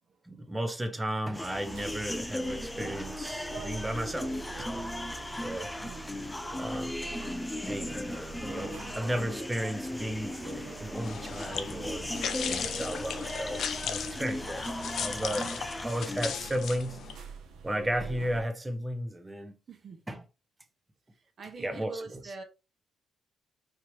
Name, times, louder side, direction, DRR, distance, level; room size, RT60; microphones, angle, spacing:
voice 1, 0.3-4.8 5.4-5.7 6.6-7.0 7.7-12.1 12.4-14.6 15.0-17.1 17.6-19.6 20.1-20.2 21.6-22.2, equal, 15° right, 0.8 m, -34 dB
sound 1, 1.3-16.3, left 1 dB, 10° left, 0.4 m, -37 dB
sound 2, 1.7-18.4, right 6 dB, 85° right, 1.0 m, -46 dB
voice 2, 5.8-6.1 19.7-20.1 21.4-22.4, right 4 dB, 50° right, 1.1 m, -43 dB
sound 3, 11.0-17.2, left 7 dB, 65° left, 0.6 m, -37 dB
4.7 x 3.0 x 3.1 m
cardioid pair, 90°, 0 cm